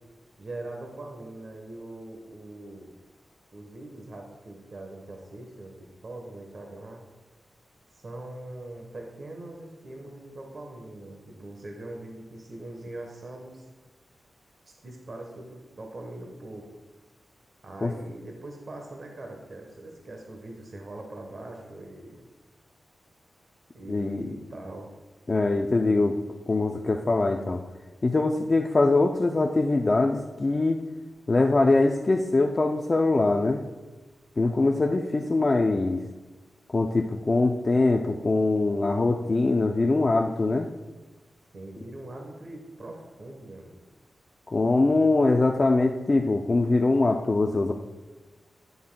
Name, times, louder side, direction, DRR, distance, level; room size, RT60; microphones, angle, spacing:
voice 1, 0.4-2.9 3.5-7.0 7.9-13.6 14.8-16.7 17.6-22.2 23.7-24.9 41.5-43.8, right 2 dB, 45° right, 2 dB, 1.0 m, -42 dB
voice 2, 23.9-24.3 25.3-26.2 26.5-27.6 28.0-30.8 31.3-33.6 34.4-36.0 36.7-40.7 44.5-47.7, left 2 dB, 30° left, 2 dB, 0.4 m, -23 dB
11.0 x 9.4 x 2.2 m, 1.2 s
wide cardioid pair, 180°, 0 cm